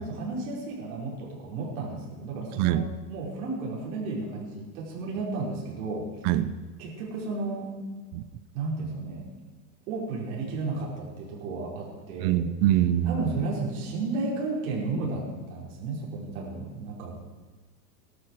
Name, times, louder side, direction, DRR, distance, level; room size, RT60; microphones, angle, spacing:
voice 1, 0.0-2.8 3.1-6.1 6.8-7.7 8.5-9.3 9.9-12.4 13.1-17.3, right 3 dB, 60° right, -3 dB, 5.2 m, -33 dB
voice 2, 6.2-6.6 8.1-8.2 12.2-13.3, right 12 dB, 40° right, 14 dB, 0.9 m, -24 dB
19.5 x 12.5 x 4.8 m, 1.3 s
supercardioid pair, 135°, 48 cm